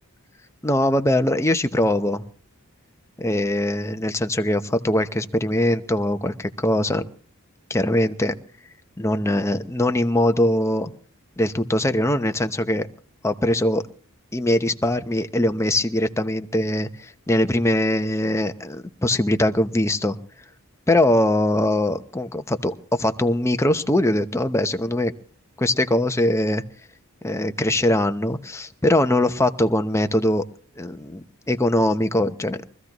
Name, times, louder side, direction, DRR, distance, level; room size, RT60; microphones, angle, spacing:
voice 1, 0.6-2.2 3.2-7.0 7.7-8.3 9.0-10.9 11.4-12.9 13.2-13.8 14.3-20.2 20.9-25.1 25.6-26.6 27.2-30.4 30.8-32.6, left 1 dB, 15° left, 8 dB, 0.8 m, -22 dB
23.5 x 15.0 x 3.1 m, 0.41 s
head